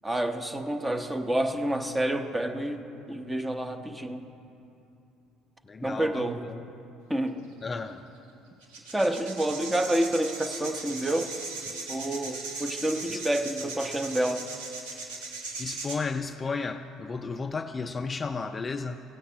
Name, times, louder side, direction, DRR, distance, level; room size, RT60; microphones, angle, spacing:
voice 1, 0.0-4.2 5.8-6.4 7.1-7.4 8.9-11.3 11.9-14.5, right 1 dB, 15° right, 7 dB, 0.9 m, -28 dB
voice 2, 5.7-6.6 7.6-8.0 11.7-11.8 13.1-13.2 14.9-15.0 15.6-19.0, left 4 dB, 30° left, 8 dB, 0.4 m, -33 dB
Chimney swifts feeding time, 7.8-7.9 8.6-16.0, right 3 dB, 85° right, 1.4 m, -38 dB
16.0 x 8.4 x 5.1 m, 2.8 s
supercardioid pair, 70°, 0 cm